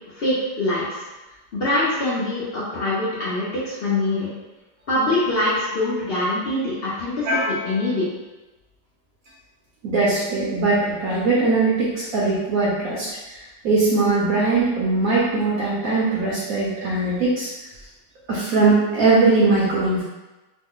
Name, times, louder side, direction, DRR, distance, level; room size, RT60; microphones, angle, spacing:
voice 1, 0.1-1.0 1.5-4.3 4.9-8.1, left 1 dB, 70° left, -8 dB, 0.5 m, -24 dB
voice 2, 7.3-7.6 9.8-13.1 13.6-17.5 18.3-20.0, right 3 dB, 65° right, -6 dB, 1.0 m, -20 dB
3.1 x 2.1 x 3.6 m, 1.1 s
omnidirectional pair, 1.9 m